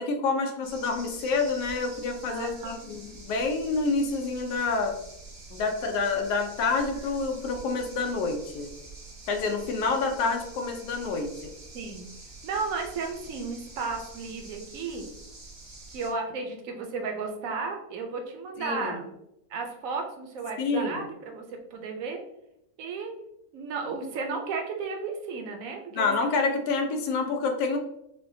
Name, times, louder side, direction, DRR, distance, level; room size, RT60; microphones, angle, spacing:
voice 1, 0.0-4.9 5.5-8.7 9.3-11.5 18.6-19.0 20.6-21.0 25.9-27.8, left 4 dB, 85° left, 4 dB, 1.2 m, -28 dB
sound 1, 0.6-16.1, right 2 dB, 90° right, 1.8 m, -46 dB
voice 2, 2.3-2.9 11.1-11.2 11.7-12.1 12.4-15.1 15.9-19.1 19.5-22.2 22.8-23.1 23.5-26.5, right 4 dB, 65° right, 3 dB, 0.9 m, -34 dB
5.6 x 2.2 x 2.6 m, 0.82 s
omnidirectional pair, 1.7 m